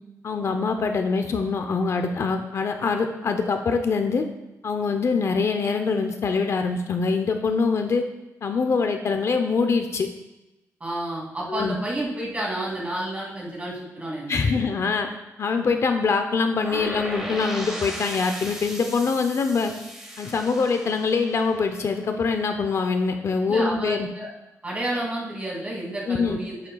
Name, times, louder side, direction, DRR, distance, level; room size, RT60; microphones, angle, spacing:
voice 1, 0.2-4.2 4.6-8.0 8.4-10.1 11.5-11.7 14.3-15.1 15.4-19.7 20.2-24.1 26.1-26.4, left 4 dB, 55° left, 6 dB, 0.6 m, -24 dB
voice 2, 10.8-14.7 23.5-24.3 24.6-26.7, right 1 dB, 25° right, -4 dB, 2.6 m, -30 dB
sound 1, 16.6-22.5, equal, 5° right, 1.4 m, -37 dB
10.5 x 7.4 x 2.3 m, 0.96 s
wide cardioid pair, 125°, 6 cm